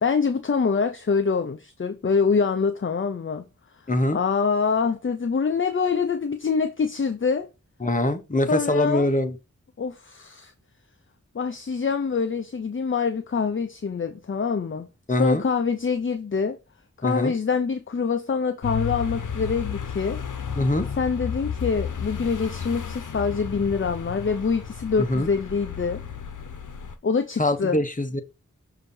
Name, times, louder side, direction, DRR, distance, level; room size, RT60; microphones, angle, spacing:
voice 1, 0.0-3.4 4.1-7.5 8.5-9.1 9.8-10.5 11.3-16.6 17.0-20.2 21.0-26.0 27.0-27.8, left 5 dB, 40° left, 0.6 m, -25 dB
voice 2, 3.9-4.2 7.8-9.4 15.1-15.4 17.0-17.3 20.6-20.9 25.0-25.3 27.4-28.2, left 1 dB, 25° left, 1.0 m, -23 dB
sound 1, 18.6-26.9, left 7 dB, 90° left, 0.8 m, -33 dB
6.5 x 2.8 x 5.3 m
wide cardioid pair, 65°, 30 cm